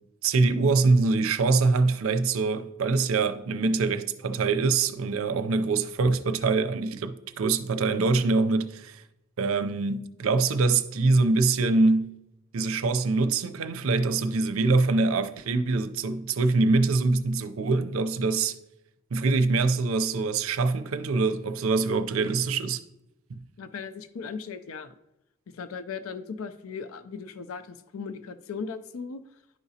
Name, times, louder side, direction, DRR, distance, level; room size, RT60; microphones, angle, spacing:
voice 1, 0.2-9.0 9.4-12.1 12.5-18.6 19.1-22.8 23.3-23.4, right 3 dB, 80° right, 0.5 m, -24 dB
voice 2, 23.6-24.9 25.5-29.2, left 5 dB, 90° left, 0.4 m, -37 dB
11.0 x 4.9 x 2.7 m
head